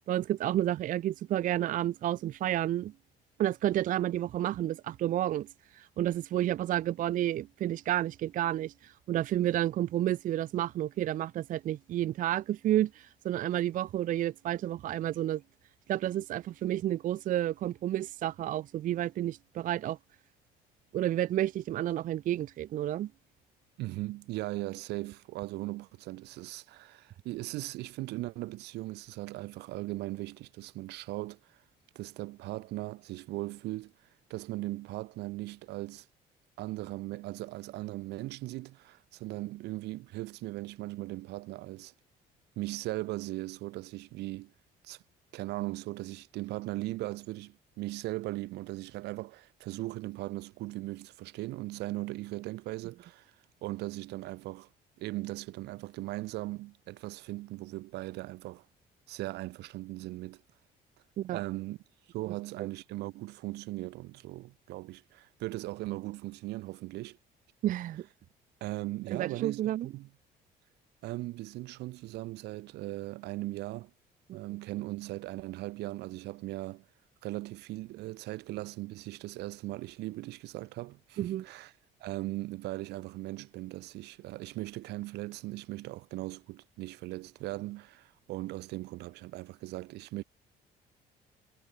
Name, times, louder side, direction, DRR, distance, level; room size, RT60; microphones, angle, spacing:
voice 1, 0.0-2.9 3.4-5.5 5.7-15.4 15.9-20.0 20.9-23.1 61.2-61.4 62.6-62.7 67.6-68.1 69.1-69.9 74.3-74.4 81.2-81.5, right 13 dB, 50° right, 0.5 m, -30 dB
voice 2, 23.8-31.6 31.9-33.9 34.3-36.1 36.6-41.9 42.6-44.5 44.8-45.0 45.3-53.3 53.6-54.7 55.0-58.6 59.1-60.4 61.3-61.8 62.1-67.2 68.6-70.1 71.0-73.9 74.3-76.8 77.2-81.7 82.0-90.2, right 19 dB, 85° right, 1.1 m, -38 dB
cardioid pair, 110°, 17 cm